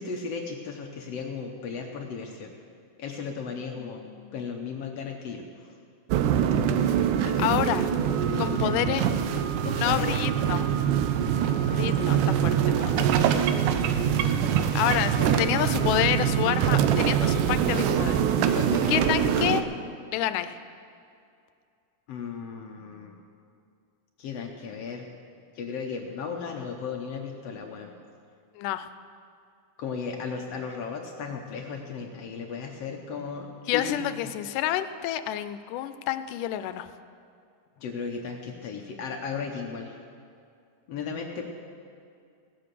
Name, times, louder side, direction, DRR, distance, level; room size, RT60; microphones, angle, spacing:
voice 1, 0.0-2.5 3.0-4.0 4.3-5.7 7.3-7.7 8.3-9.0 9.3-10.2 12.9-13.9 14.5-15.5 18.3-19.4 22.1-23.2 24.2-25.1 25.5-27.9 29.8-34.3 37.8-40.0 40.9-41.4, left 5 dB, 65° left, 2 dB, 1.7 m, -36 dB
voice 2, 3.8-4.3 7.2-7.9 8.4-9.1 9.8-10.7 11.7-13.0 14.8-18.6 18.9-19.6 20.1-20.6 28.6-28.9 33.7-36.9, left 12 dB, 85° left, 11 dB, 2.1 m, -28 dB
sound 1, 6.1-19.6, right 9 dB, 85° right, 2.2 m, -24 dB
17.5 x 7.8 x 6.8 m, 2.4 s
omnidirectional pair, 3.6 m